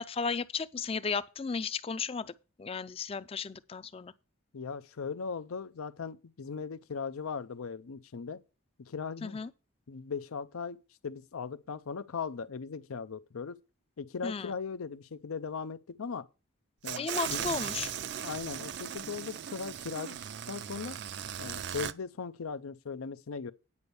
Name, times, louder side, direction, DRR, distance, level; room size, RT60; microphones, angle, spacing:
voice 1, 0.0-2.3 2.6-4.1 9.2-9.5 14.2-14.5 17.0-17.9, left 5 dB, 25° left, 0.4 m, -34 dB
voice 2, 4.5-8.4 8.8-9.4 9.9-13.6 14.0-16.3 16.8-17.5 18.2-20.2 20.5-21.0 21.4-23.5, left 5 dB, 90° left, 0.6 m, -38 dB
sound 1, 16.8-21.9, right 9 dB, 55° right, 0.4 m, -38 dB
9.6 x 5.3 x 6.8 m
head